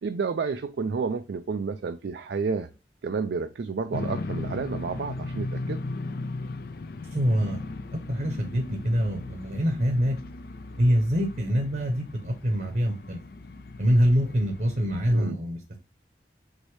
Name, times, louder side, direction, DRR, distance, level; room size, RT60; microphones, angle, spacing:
voice 1, 0.0-2.7 3.0-5.8 15.1-15.4, right 5 dB, 65° right, 0.4 m, -30 dB
sound 1, 3.9-15.2, left 2 dB, 55° left, 0.4 m, -37 dB
voice 2, 7.1-7.7 7.9-10.2 10.8-13.2 13.8-15.8, equal, 50° right, 0.9 m, -25 dB
6.1 x 2.7 x 3.1 m
head